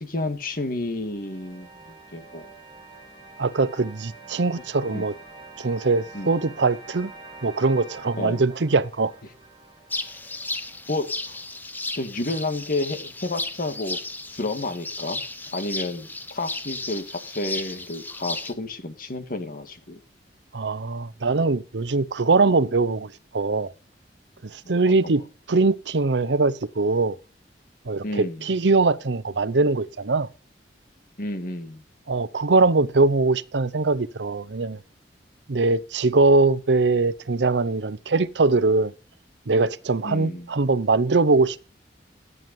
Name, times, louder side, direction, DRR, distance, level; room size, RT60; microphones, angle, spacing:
voice 1, 0.0-2.5 4.9-5.0 6.1-6.4 8.2-8.4 10.9-11.1 11.9-14.0 14.3-15.2 15.5-20.0 24.6-25.1 28.0-28.4 31.2-31.8 40.0-40.5, left 2 dB, 55° left, 1.8 m, -31 dB
sound 1, 0.6-11.6, right 3 dB, 25° right, 2.5 m, -46 dB
voice 2, 3.4-5.1 5.6-7.1 7.4-9.1 20.5-23.7 24.5-27.2 27.9-30.3 32.1-34.8 35.5-38.9 39.5-41.6, right 3 dB, 80° right, 0.7 m, -22 dB
sound 2, 9.9-18.5, left 2 dB, 10° left, 0.9 m, -34 dB
13.5 x 9.3 x 5.3 m
head